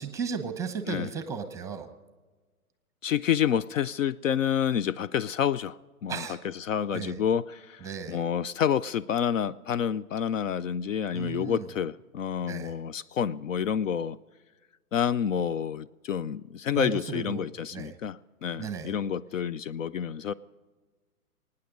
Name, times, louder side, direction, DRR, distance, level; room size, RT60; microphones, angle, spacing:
voice 1, 0.0-1.9 6.1-6.4 6.9-7.1 7.8-8.2 11.1-11.6 12.4-12.8 16.7-17.4 17.7-18.0 18.6-18.9, right 6 dB, 5° right, 9 dB, 0.8 m, -35 dB
voice 2, 3.0-14.2 14.9-20.3, left 8 dB, 60° left, 19 dB, 0.5 m, -29 dB
24.0 x 9.7 x 5.2 m, 1.3 s
hypercardioid pair, 130°, 45 cm